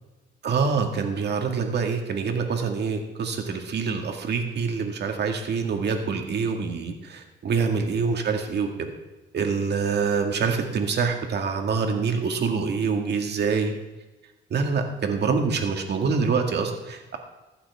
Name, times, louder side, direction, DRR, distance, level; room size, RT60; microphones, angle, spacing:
voice 1, 0.4-8.9 9.3-13.7 14.5-17.2, right 5 dB, 60° right, 4 dB, 1.9 m, -25 dB
15.0 x 11.5 x 3.6 m, 1.1 s
cardioid pair, 90°, 20 cm